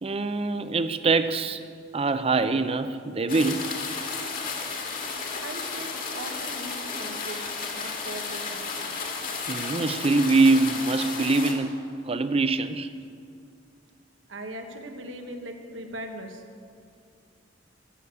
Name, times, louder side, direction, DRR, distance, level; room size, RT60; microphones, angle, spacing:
voice 1, 0.0-1.6 1.9-3.7 9.5-11.8 12.0-12.9, right 3 dB, 30° right, 11 dB, 0.5 m, -24 dB
sound 1, 3.3-11.5, left 4 dB, 50° left, 1.8 m, -33 dB
voice 2, 5.4-7.4 7.7-8.6 14.3-16.4, right 1 dB, 80° right, 5 dB, 1.4 m, -39 dB
13.0 x 6.9 x 8.4 m, 2.3 s
head